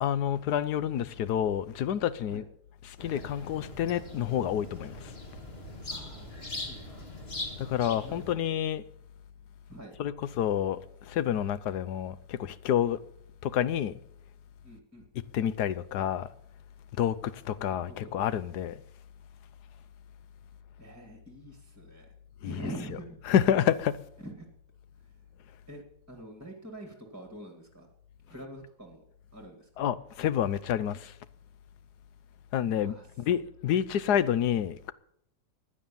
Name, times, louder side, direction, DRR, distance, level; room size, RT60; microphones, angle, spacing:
voice 1, 0.0-2.4 2.8-5.1 7.6-8.8 10.0-13.0 13.4-14.0 15.3-16.3 17.0-18.8 22.4-22.7 23.3-24.0 29.8-31.1 32.5-34.9, left 10 dB, 80° left, 1.3 m, -29 dB
sound 1, 3.0-8.3, left 2 dB, 40° left, 2.1 m, -41 dB
voice 2, 5.9-6.3 6.5-7.2 8.0-8.2 9.7-10.0 14.6-15.0 17.5-18.1 20.8-22.1 22.4-23.3 24.2-24.5 25.7-27.9 28.3-29.0 29.3-29.9 32.7-33.1, right 1 dB, 10° right, 2.1 m, -45 dB
15.5 x 10.0 x 7.0 m
omnidirectional pair, 1.7 m